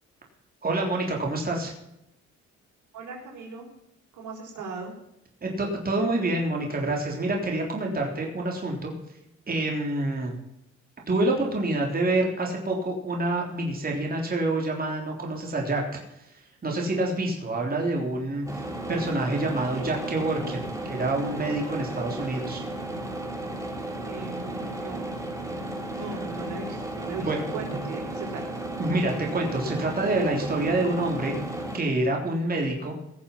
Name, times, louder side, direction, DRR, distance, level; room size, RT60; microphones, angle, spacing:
voice 1, 0.6-1.7 5.4-8.9 9.5-10.3 11.1-16.3 16.6-18.6 18.9-22.6 26.0-26.1 27.2-27.8 28.8-31.3 31.7-32.9, right 2 dB, 30° right, 0 dB, 3.6 m, -27 dB
voice 2, 2.9-3.7 4.1-4.9 24.0-25.0 25.9-28.4, right 4 dB, 80° right, 0 dB, 5.2 m, -38 dB
sound 1, 18.5-31.8, right 1 dB, 10° right, 3.2 m, -34 dB
19.0 x 7.2 x 5.8 m, 0.82 s
cardioid pair, 90°, 30 cm